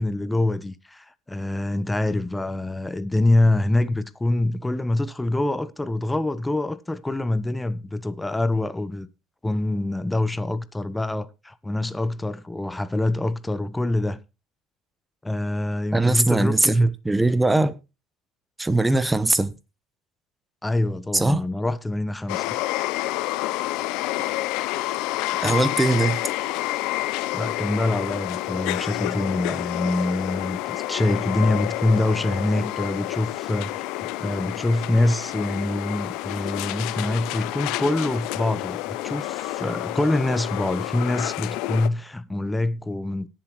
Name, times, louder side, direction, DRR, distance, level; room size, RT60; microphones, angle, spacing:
voice 1, 0.0-9.1 9.4-14.2 15.2-16.9 20.6-22.6 27.3-43.3, left 2 dB, 10° left, 0.9 m, -25 dB
voice 2, 15.9-17.7 18.6-19.5 21.1-21.4 24.2-24.3 25.4-26.2, right 2 dB, 15° right, 1.2 m, -21 dB
sound 1, 22.3-41.9, left 17 dB, 70° left, 0.6 m, -29 dB
18.5 x 7.4 x 3.1 m
hypercardioid pair, 75°, 0 cm